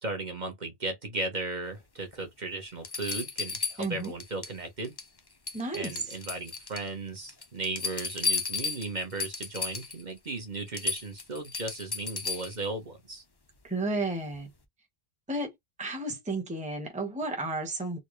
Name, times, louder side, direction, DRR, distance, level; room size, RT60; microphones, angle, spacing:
voice 1, 0.0-4.9 5.7-13.2, right 2 dB, 45° right, 1.2 m, -36 dB
sound 1, 2.1-2.2 2.8-4.6 4.8-5.2 5.5-6.9 7.3-10.0 10.4-10.5 10.7-12.7 14.3-14.4, left 5 dB, 30° left, 0.5 m, -34 dB
voice 2, 3.8-4.1 5.5-5.9 13.6-14.5 15.3-15.5 15.8-18.0, right 2 dB, 5° right, 1.0 m, -32 dB
4.0 x 2.2 x 3.1 m
omnidirectional pair, 1.1 m